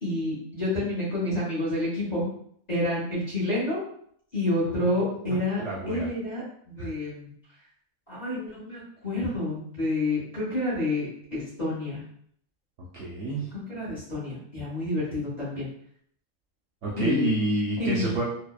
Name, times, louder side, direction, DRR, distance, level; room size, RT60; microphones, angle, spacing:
voice 1, 0.0-2.2 2.7-3.8 4.3-5.6 5.9-7.3 8.1-12.0 13.7-15.7 17.0-17.3 17.8-18.1, left 1 dB, 35° left, -8 dB, 0.9 m, -29 dB
voice 2, 5.3-6.1 6.8-6.9 12.9-13.5 16.8-18.2, right 2 dB, 65° right, -4 dB, 0.8 m, -29 dB
2.7 x 2.0 x 2.3 m, 0.65 s
omnidirectional pair, 1.5 m